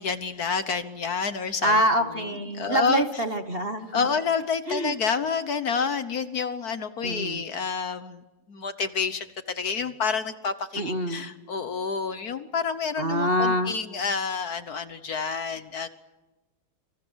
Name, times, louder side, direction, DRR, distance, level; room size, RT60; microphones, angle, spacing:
voice 1, 0.0-1.7 2.1-3.0 3.9-8.2 8.5-15.9, left 5 dB, 55° left, 12 dB, 1.4 m, -29 dB
voice 2, 1.6-4.1 4.7-4.9 7.0-7.4 10.8-11.3 13.0-13.7, equal, 35° right, 8 dB, 1.2 m, -25 dB
27.5 x 26.5 x 6.3 m, 1.1 s
omnidirectional pair, 2.2 m